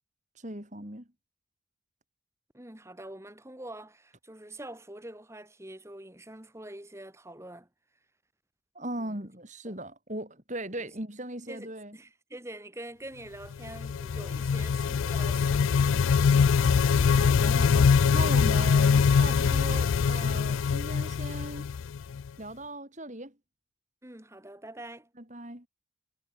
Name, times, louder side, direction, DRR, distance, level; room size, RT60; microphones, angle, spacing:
voice 1, 0.4-1.1 8.7-12.0 17.1-21.7 22.4-23.3 25.3-25.7, right 1 dB, 35° right, 4.8 m, -38 dB
voice 2, 2.5-7.7 9.0-9.2 9.7-9.8 11.5-15.8 24.0-25.1, right 1 dB, 15° right, 1.8 m, -45 dB
sound 1, 13.5-22.3, left 6 dB, 75° left, 0.4 m, -23 dB
head